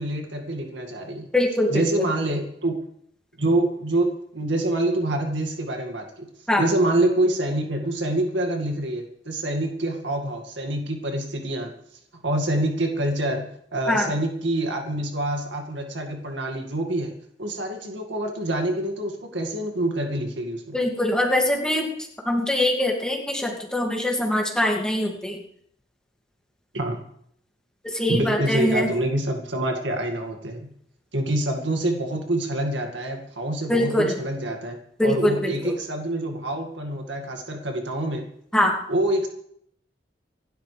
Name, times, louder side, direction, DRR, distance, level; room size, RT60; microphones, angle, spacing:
voice 1, 0.0-1.3 1.7-2.7 3.4-6.3 6.6-11.7 12.2-17.1 17.4-20.8 26.7-27.0 28.1-30.7 31.1-34.8 35.0-38.2 38.9-39.3, right 1 dB, 80° right, 3 dB, 2.1 m, -26 dB
voice 2, 1.3-2.1 6.5-6.7 13.9-14.1 20.7-21.9 22.2-25.4 27.8-28.9 33.7-34.2 35.0-35.7 38.5-38.8, left 1 dB, 5° left, 0 dB, 2.3 m, -23 dB
27.0 x 12.0 x 3.4 m, 0.69 s
head